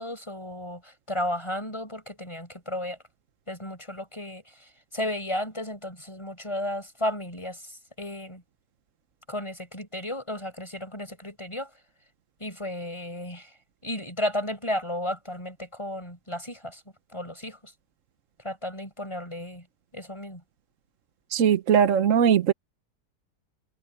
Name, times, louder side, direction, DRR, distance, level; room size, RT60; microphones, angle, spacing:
voice 1, 0.0-3.0 3.5-8.4 9.3-11.8 12.4-16.8 17.1-17.7 18.4-19.7 19.9-20.4, left 1 dB, 15° left, 7.7 m, -34 dB
voice 2, 21.3-22.5, right 8 dB, 55° right, 1.1 m, -20 dB
omnidirectional pair, 1.8 m